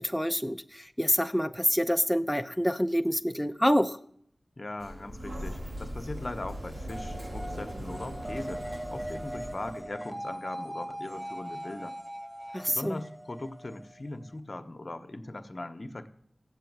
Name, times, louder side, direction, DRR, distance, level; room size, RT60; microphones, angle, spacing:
voice 1, 0.0-4.0 12.5-13.0, equal, 5° left, 7 dB, 0.7 m, -27 dB
voice 2, 4.6-12.0 12.7-16.1, left 2 dB, 50° left, 9 dB, 1.1 m, -40 dB
Sliding door, 4.8-9.8, equal, 75° right, 4.8 m, -39 dB
sound 1, 6.9-14.4, right 1 dB, 25° right, 2.6 m, -40 dB
14.5 x 8.1 x 9.4 m, 0.66 s
cardioid pair, 45°, 0 cm